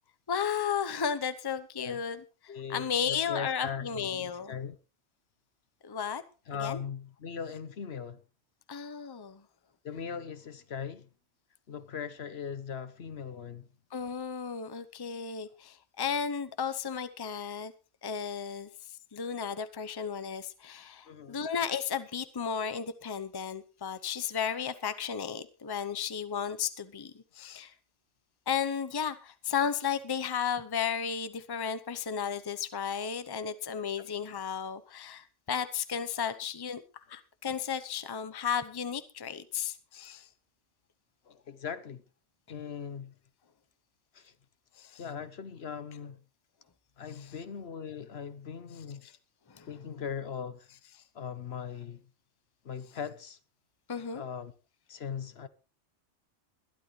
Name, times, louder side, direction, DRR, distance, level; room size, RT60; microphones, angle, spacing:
voice 1, 0.3-4.5 5.8-6.2 6.6-6.8 8.7-9.4 13.9-17.7 18.0-18.7 19.1-27.7 28.5-36.8 37.1-40.3 44.8-45.0 49.0-49.1 49.5-49.7 53.9-54.2, left 7 dB, 25° left, 0.7 m, -34 dB
voice 2, 2.5-4.8 6.5-8.2 9.8-11.1 11.7-13.7 21.1-21.4 41.3-42.0 42.5-43.1 44.1-44.3 45.0-46.2 47.0-49.1 49.7-50.7 51.1-52.0 52.6-53.4 54.1-54.5 54.9-55.5, left 7 dB, 60° left, 1.1 m, -39 dB
21.5 x 11.5 x 3.2 m
omnidirectional pair, 1.2 m